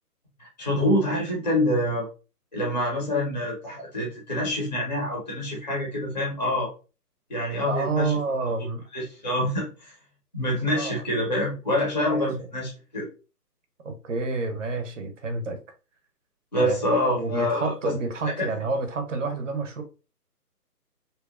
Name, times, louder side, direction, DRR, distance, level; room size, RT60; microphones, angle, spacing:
voice 1, 0.4-2.1 2.5-6.7 7.3-8.5 8.9-9.9 10.3-13.1 16.5-17.9 18.2-18.5, left 1 dB, 30° left, 0.5 m, -26 dB
voice 2, 7.7-8.8 10.8-11.0 12.0-12.3 13.8-15.6 16.6-16.9 17.1-19.8, right 3 dB, 50° right, 0.6 m, -29 dB
2.7 x 2.1 x 2.3 m
hypercardioid pair, 155°, 48 cm